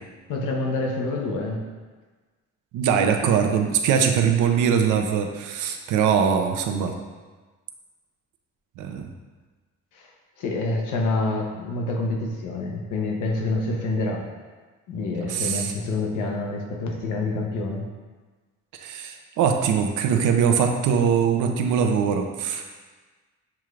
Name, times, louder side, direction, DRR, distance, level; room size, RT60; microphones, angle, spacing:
voice 1, 0.3-1.6 9.9-10.1 10.4-14.3 14.9-17.8, left 2 dB, 85° left, 1 dB, 0.8 m, -27 dB
voice 2, 2.7-6.9 8.8-9.1 15.3-15.7 18.7-22.6, right 7 dB, 85° right, 5 dB, 0.5 m, -22 dB
7.1 x 2.4 x 3.2 m, 1.3 s
cardioid pair, 90°, 30 cm